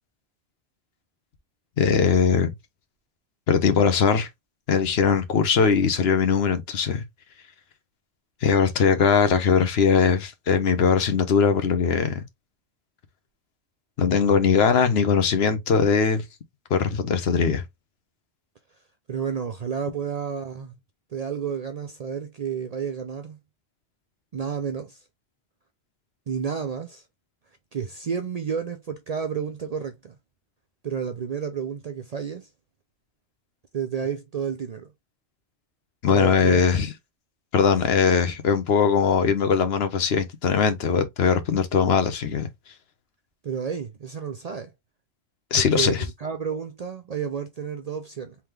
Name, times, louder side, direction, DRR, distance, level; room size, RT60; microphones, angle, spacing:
voice 1, 1.8-2.5 3.5-4.3 4.7-7.0 8.4-12.2 14.0-16.2 16.7-17.6 36.0-36.9 37.5-42.5 45.5-46.0, left 6 dB, 70° left, 1.0 m, -20 dB
voice 2, 19.1-20.7 21.1-23.4 24.3-25.0 26.3-27.0 27.7-30.2 30.8-32.5 33.7-34.9 36.1-36.8 43.4-44.7 45.5-48.4, right 7 dB, 50° right, 0.5 m, -31 dB
3.7 x 2.9 x 3.2 m
omnidirectional pair, 1.1 m